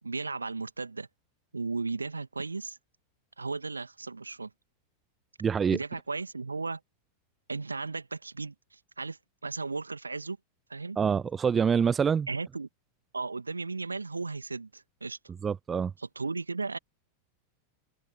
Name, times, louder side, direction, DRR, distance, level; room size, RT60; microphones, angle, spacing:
voice 1, 0.0-1.1 1.5-2.8 3.4-4.5 5.7-6.8 7.5-10.4 10.7-11.0 12.3-12.7 13.1-15.2 16.0-16.8, right 3 dB, 80° right, 1.9 m, -35 dB
voice 2, 5.4-5.8 11.0-12.3 15.4-15.9, right 6 dB, 20° right, 0.4 m, -25 dB
open air
figure-of-eight pair, 90°, 0 cm